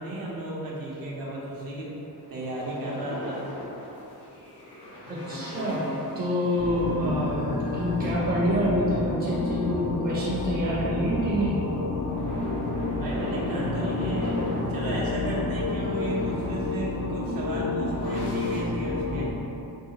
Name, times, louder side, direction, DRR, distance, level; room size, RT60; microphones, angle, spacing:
voice 1, 0.0-2.0 2.3-3.4 13.0-19.4, right 1 dB, 65° right, -5 dB, 0.8 m, -34 dB
sound 1, 0.9-1.0 1.4-18.6, left 1 dB, 80° left, 0.9 m, -39 dB
voice 2, 5.1-11.6, equal, 25° right, -6 dB, 0.6 m, -27 dB
sound 2, 6.6-19.3, left 2 dB, 45° left, 0.5 m, -29 dB
3.2 x 2.7 x 2.8 m, 2.7 s
wide cardioid pair, 125°, 38 cm